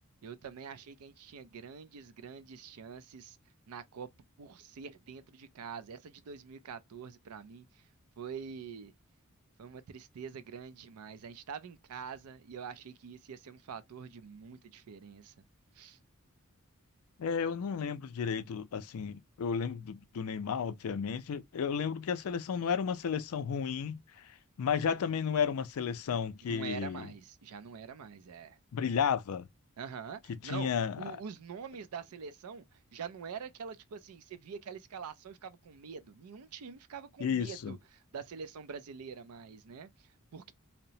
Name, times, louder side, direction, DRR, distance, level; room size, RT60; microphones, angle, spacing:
voice 1, 0.2-3.4 3.7-4.1 4.4-7.8 8.2-8.9 9.6-15.3 15.7-16.0 26.4-28.6 29.8-30.7 31.0-40.5, right 6 dB, 90° right, 0.4 m, -45 dB
voice 2, 17.2-24.3 24.6-27.1 28.7-29.5 30.4-31.0 37.2-37.8, left 7 dB, 80° left, 0.4 m, -33 dB
2.8 x 2.0 x 2.6 m
head